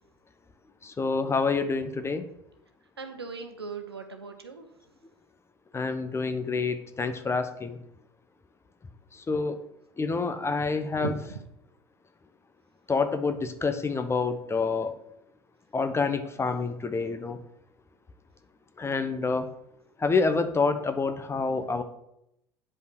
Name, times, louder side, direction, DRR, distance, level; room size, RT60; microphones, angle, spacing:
voice 1, 0.8-2.3 5.7-7.8 9.1-9.6 10.0-11.2 12.9-14.9 15.7-17.4 18.8-19.5 20.0-21.8, left 4 dB, 20° left, 9 dB, 1.0 m, -27 dB
voice 2, 3.0-4.7 11.0-11.4, right 4 dB, 85° right, 6 dB, 1.0 m, -37 dB
8.7 x 5.3 x 6.1 m, 0.80 s
figure-of-eight pair, 70°, 13 cm